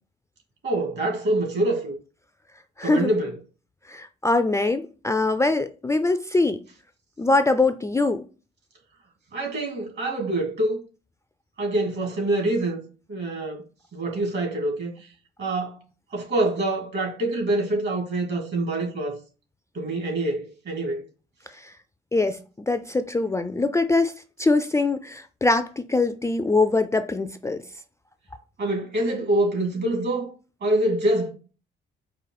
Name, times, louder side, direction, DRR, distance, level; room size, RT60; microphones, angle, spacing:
voice 1, 0.6-1.9 2.8-3.4 9.3-10.8 11.6-12.8 13.1-13.6 13.9-15.1 15.4-15.8 16.1-19.2 19.7-21.0 28.6-30.3 30.6-31.3, right 1 dB, 60° right, 2.1 m, -25 dB
voice 2, 2.8-3.1 3.9-6.6 7.2-8.3 21.6-21.7 22.1-24.1 24.4-27.6, left 3 dB, 15° left, 0.3 m, -23 dB
5.0 x 2.4 x 4.0 m
cardioid pair, 90°, 20 cm